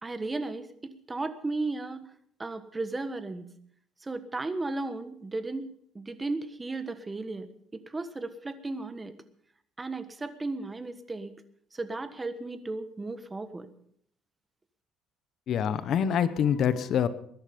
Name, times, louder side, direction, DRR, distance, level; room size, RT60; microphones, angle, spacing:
voice 1, 0.0-2.1 2.4-3.5 4.0-5.7 5.9-9.1 9.8-11.3 11.7-13.7, right 3 dB, 15° right, 11 dB, 1.4 m, -35 dB
voice 2, 15.5-17.1, left 8 dB, 50° left, 14 dB, 1.0 m, -25 dB
20.5 x 11.5 x 5.3 m, 0.67 s
cardioid pair, 130°, 0 cm